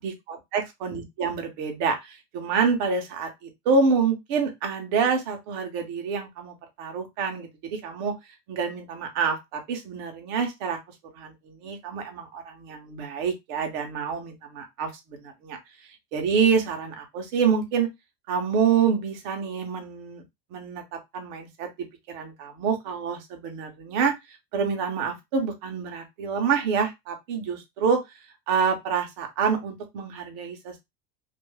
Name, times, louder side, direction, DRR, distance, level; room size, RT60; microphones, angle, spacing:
voice 1, 0.0-8.1 8.5-10.8 11.1-15.6 16.1-17.9 18.3-20.2 20.5-21.7 22.1-24.1 24.5-28.0 28.5-30.8, right 5 dB, 30° right, 4 dB, 0.4 m, -27 dB
2.2 x 2.1 x 3.1 m, 0.19 s
supercardioid pair, 165°, 49 cm